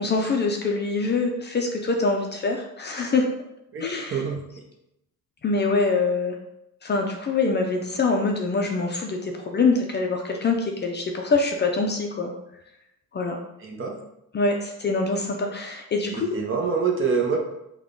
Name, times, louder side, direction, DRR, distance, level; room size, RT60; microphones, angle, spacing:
voice 1, 0.0-3.2 3.8-4.2 5.4-6.4 6.8-12.3 13.1-13.4 14.3-16.4, left 3 dB, 35° left, 2 dB, 0.5 m, -24 dB
voice 2, 3.7-4.4 13.6-13.9 16.1-17.4, right 5 dB, 40° right, 0 dB, 0.8 m, -26 dB
3.6 x 2.3 x 3.7 m, 0.85 s
cardioid pair, 115°, 33 cm